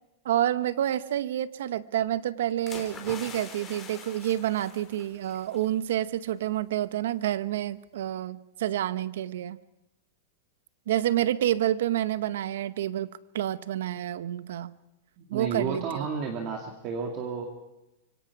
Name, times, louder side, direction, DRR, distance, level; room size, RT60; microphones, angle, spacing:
voice 1, 0.2-9.6 10.9-13.1 13.3-14.7 15.3-16.1, right 12 dB, 70° right, 15 dB, 0.9 m, -28 dB
sound 1, 2.7-5.7 6.0-6.2, left 6 dB, 15° left, 3.1 m, -44 dB
voice 2, 15.2-17.5, right 6 dB, 35° right, 2 dB, 2.2 m, -32 dB
25.5 x 23.5 x 4.7 m, 0.94 s
supercardioid pair, 165°, 0 cm